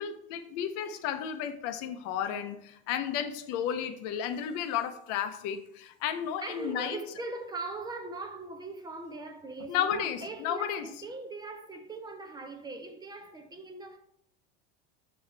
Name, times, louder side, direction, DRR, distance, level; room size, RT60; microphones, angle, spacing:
voice 1, 0.0-7.0 9.7-10.9, left 9 dB, 55° left, 0.7 m, -33 dB
voice 2, 6.4-14.0, right 3 dB, 15° right, 0.6 m, -40 dB
6.8 x 5.8 x 3.3 m
supercardioid pair, 130°, 29 cm